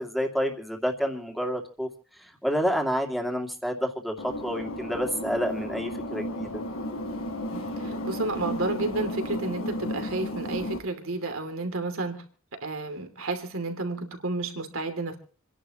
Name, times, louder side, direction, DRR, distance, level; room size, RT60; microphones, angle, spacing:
voice 1, 0.0-1.9 2.2-6.6, equal, ahead, 2 dB, 2.4 m, -29 dB
sound 1, 4.2-10.8, equal, 85° left, 3.4 m, -33 dB
voice 2, 7.4-12.2 12.6-15.2, right 2 dB, 75° right, 6 dB, 2.8 m, -31 dB
28.5 x 11.0 x 3.0 m, 0.39 s
head